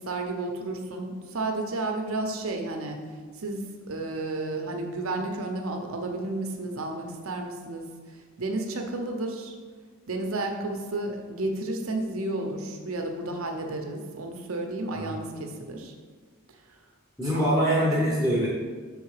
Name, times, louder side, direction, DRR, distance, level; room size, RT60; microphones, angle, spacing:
voice 1, 0.0-3.0 3.4-9.5 10.1-15.9 17.3-17.6, right 2 dB, 70° right, 3 dB, 0.8 m, -32 dB
voice 2, 17.2-18.5, equal, 5° right, -6 dB, 0.9 m, -24 dB
6.5 x 3.8 x 4.8 m, 1.5 s
head